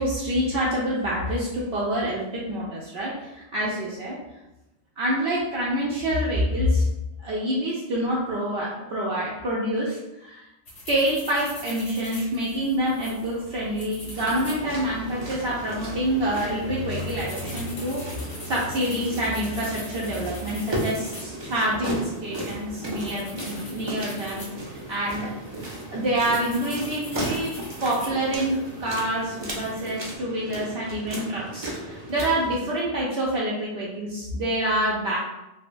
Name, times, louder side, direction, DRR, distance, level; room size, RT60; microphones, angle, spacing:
voice 1, 0.0-4.2 5.0-6.8 7.2-10.4 10.9-24.4 24.9-25.3 25.6-25.7 25.9-27.5 27.8-35.2, equal, 65° right, -6 dB, 0.8 m, -27 dB
sound 1, 10.7-30.1, left 1 dB, 80° left, 1.4 m, -41 dB
sound 2, 14.1-32.6, right 1 dB, 40° right, 0.4 m, -36 dB
3.3 x 2.1 x 2.5 m, 0.95 s
omnidirectional pair, 1.2 m